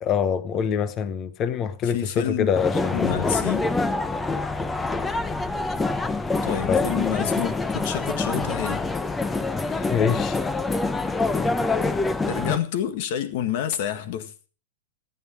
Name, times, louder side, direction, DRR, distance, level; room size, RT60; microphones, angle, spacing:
voice 1, 0.0-3.3 6.7-6.8 9.5-10.4, left 7 dB, 30° left, 1.0 m, -25 dB
voice 2, 1.9-2.5 2.9-3.7 6.4-8.8 12.3-14.3, left 10 dB, 55° left, 1.7 m, -28 dB
sound 1, 2.6-12.6, left 3 dB, 10° left, 0.8 m, -25 dB
14.0 x 9.6 x 4.9 m
hypercardioid pair, 135°, 0 cm